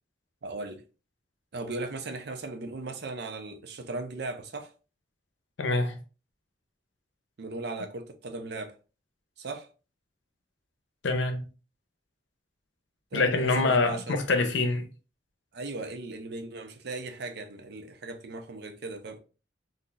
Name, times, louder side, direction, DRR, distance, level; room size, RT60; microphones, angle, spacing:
voice 1, 0.4-0.8 1.5-4.7 7.4-8.8 9.4-9.7 13.1-14.2 15.5-19.2, right 2 dB, 60° right, 0.6 m, -37 dB
voice 2, 5.6-6.0 11.0-11.5 13.1-14.9, left 3 dB, 80° left, 0.6 m, -25 dB
2.5 x 2.4 x 3.9 m
head